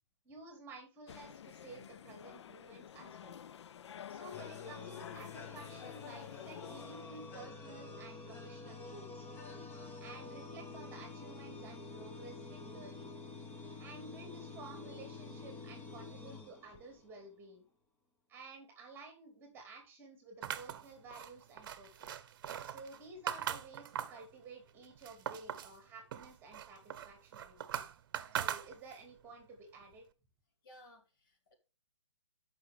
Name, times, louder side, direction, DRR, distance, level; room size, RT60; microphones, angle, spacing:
voice 1, 0.2-3.4 4.1-9.3 10.0-13.1 13.8-17.7 18.3-22.2 22.6-26.8 27.0-27.8 28.3-30.0, right 3 dB, 15° right, 4 dB, 2.7 m, -53 dB
sound 1, 1.1-7.5, left 9 dB, 70° left, 0.5 m, -50 dB
sound 2, 4.3-17.2, left 3 dB, 10° left, 1.0 m, -48 dB
sound 3, 20.4-24.3 24.7-25.8 26.1-29.1, right 9 dB, 45° right, 1.0 m, -41 dB
voice 2, 30.6-31.6, equal, 45° left, 2 dB, 4.2 m, -59 dB
13.5 x 6.1 x 3.6 m, 0.32 s
hypercardioid pair, 160°, 15 cm